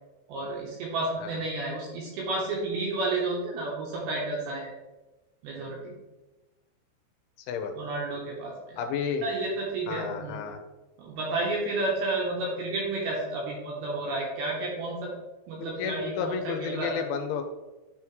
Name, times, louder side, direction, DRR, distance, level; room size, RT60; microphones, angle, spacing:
voice 1, 0.3-4.7 5.4-5.9 7.8-8.8 9.2-10.4 11.0-15.1 15.5-17.1, right 2 dB, 75° right, -2 dB, 2.3 m, -31 dB
voice 2, 7.5-7.9 8.8-9.2 9.9-10.6 15.6-17.4, left 6 dB, 85° left, 6 dB, 3.1 m, -32 dB
10.5 x 3.5 x 3.1 m, 1.1 s
omnidirectional pair, 5.5 m